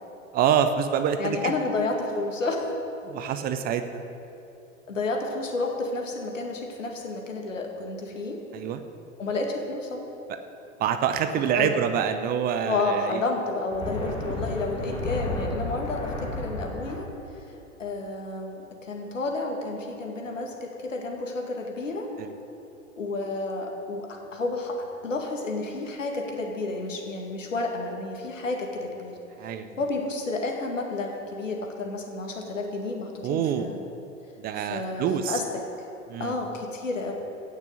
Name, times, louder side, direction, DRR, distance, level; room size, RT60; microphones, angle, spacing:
voice 1, 0.3-1.5 3.0-4.0 8.5-8.8 10.8-13.2 14.7-15.0 29.4-29.7 33.2-33.7 34.4-35.4 36.1-36.4, right 8 dB, 25° right, 9 dB, 0.6 m, -26 dB
voice 2, 1.2-2.7 4.9-8.4 9.2-10.0 11.5-11.7 12.6-17.1 17.3-17.4 17.8-22.1 23.0-24.8 25.0-29.1 29.8-33.8 34.6-35.4 36.2-37.1, left 3 dB, 75° left, 1 dB, 2.3 m, -31 dB
sound 1, 13.6-16.9, left 2 dB, 15° left, 2.4 m, -32 dB
17.0 x 6.4 x 8.1 m, 2.9 s
figure-of-eight pair, 90°, 39 cm